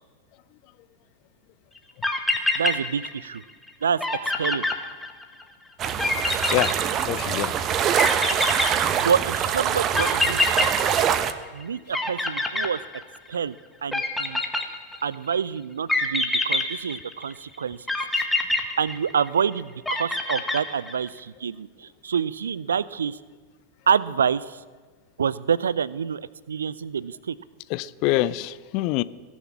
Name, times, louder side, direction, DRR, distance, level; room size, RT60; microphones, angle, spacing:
sound 1, 1.8-1.9 2.0-3.4 3.7-3.8 4.0-5.4 6.0-7.4 8.0-9.3 9.9-11.6 11.9-13.3 13.9-15.1 15.9-17.3 17.9-19.4 19.9-21.1, left 2 dB, 5° left, 1.6 m, -25 dB
voice 1, 2.6-3.4 3.8-4.6 8.6-10.7 11.5-12.8 13.3-13.6 13.8-14.4 15.0-17.8 18.8-23.2 23.9-24.6 25.2-26.2 26.5-27.4, right 7 dB, 70° right, 20 dB, 0.5 m, -27 dB
sound 2, 5.8-11.3, right 9 dB, 30° right, 0.9 m, -24 dB
voice 2, 7.1-7.5 27.7-29.0, left 16 dB, 45° left, 17 dB, 0.5 m, -25 dB
21.0 x 7.2 x 8.5 m, 1.4 s
figure-of-eight pair, 90°, 0 cm